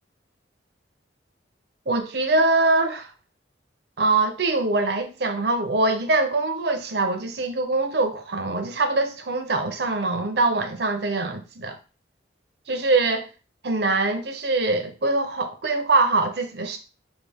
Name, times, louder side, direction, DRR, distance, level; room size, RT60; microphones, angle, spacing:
voice 1, 1.9-3.1 4.0-11.8 12.7-13.3 13.6-16.8, right 3 dB, 60° right, 0.7 m, -23 dB
5.9 x 2.4 x 3.4 m
head